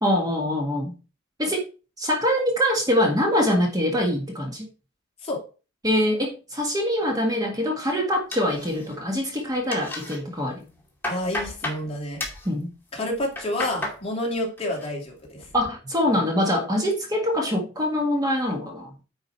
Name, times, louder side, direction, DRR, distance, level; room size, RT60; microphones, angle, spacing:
voice 1, 0.0-0.9 1.4-1.6 2.0-4.7 5.8-10.6 12.5-12.7 15.5-18.9, equal, 20° right, 1.8 m, -24 dB
sound 1, 8.3-9.1 9.4-10.2 10.6-11.8 12.2-12.5 13.1-14.0 14.4-14.9 15.2-15.7, left 1 dB, 10° left, 2.5 m, -33 dB
voice 2, 11.1-12.2 12.9-15.5, left 1 dB, 30° left, 2.5 m, -29 dB
9.7 x 5.1 x 4.5 m
head